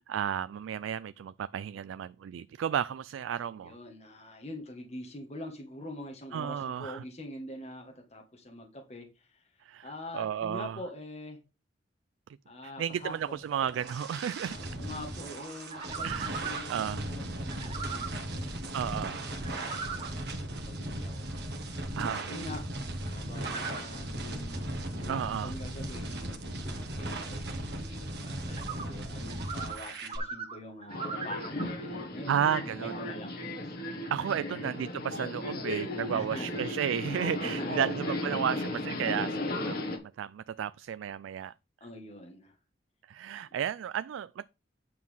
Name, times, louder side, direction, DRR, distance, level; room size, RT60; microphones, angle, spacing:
voice 1, 0.0-3.8 6.3-7.0 9.6-10.8 12.6-14.6 16.0-17.0 18.7-19.3 22.0-22.4 25.1-25.5 32.3-32.9 34.1-41.5 43.1-44.5, right 9 dB, 85° right, 0.3 m, -33 dB
voice 2, 3.6-11.4 12.5-13.4 14.5-22.6 23.0-33.7 34.2-34.6 36.0-36.6 37.4-38.0 41.8-42.5, left 1 dB, 35° left, 1.7 m, -45 dB
sound 1, 13.2-30.2, right 1 dB, 60° right, 1.6 m, -37 dB
sound 2, 15.7-16.7 17.5-18.1 19.3-20.1 23.4-23.8 28.5-28.9 29.3-29.8 30.1-31.6, right 5 dB, 30° right, 1.1 m, -39 dB
Subway metro underground, 30.9-40.0, left 1 dB, 55° left, 1.7 m, -35 dB
9.6 x 6.1 x 3.6 m
head